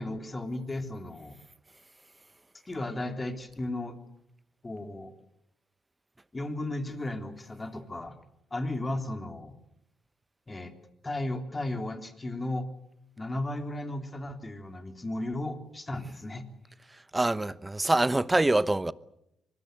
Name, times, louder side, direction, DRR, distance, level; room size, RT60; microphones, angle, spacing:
voice 1, 0.0-1.4 2.7-4.0 4.6-5.1 6.3-8.1 8.5-9.5 10.5-10.7 11.0-12.7 13.2-16.4, left 1 dB, 20° left, 3.3 m, -35 dB
voice 2, 16.9-18.9, right 2 dB, 15° right, 0.9 m, -25 dB
24.5 x 20.0 x 8.0 m
cardioid pair, 90°, 0 cm